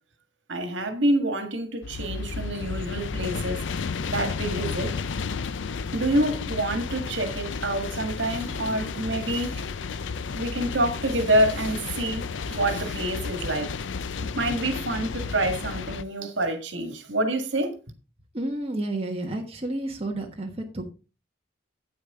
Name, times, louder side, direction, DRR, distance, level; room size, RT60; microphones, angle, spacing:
voice 1, 0.5-3.6 4.1-5.0 5.9-9.6 10.4-13.7 14.4-17.7, right 1 dB, 70° right, 1.8 m, -27 dB
sound 1, 1.8-16.0, left 5 dB, 70° left, 0.5 m, -32 dB
voice 2, 18.3-20.8, right 1 dB, 30° right, 1.2 m, -31 dB
9.5 x 8.7 x 3.7 m
head